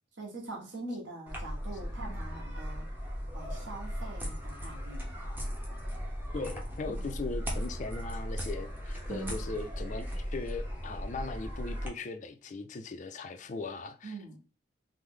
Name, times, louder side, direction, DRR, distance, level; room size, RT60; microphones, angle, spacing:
voice 1, 0.2-2.9 3.3-5.3 6.9-7.1 9.1-9.6 14.0-14.4, right 2 dB, 70° right, 1.1 m, -43 dB
sound 1, 1.3-11.9, equal, 10° right, 0.6 m, -37 dB
voice 2, 6.3-14.1, left 3 dB, 40° left, 0.3 m, -39 dB
3.1 x 2.0 x 3.6 m
head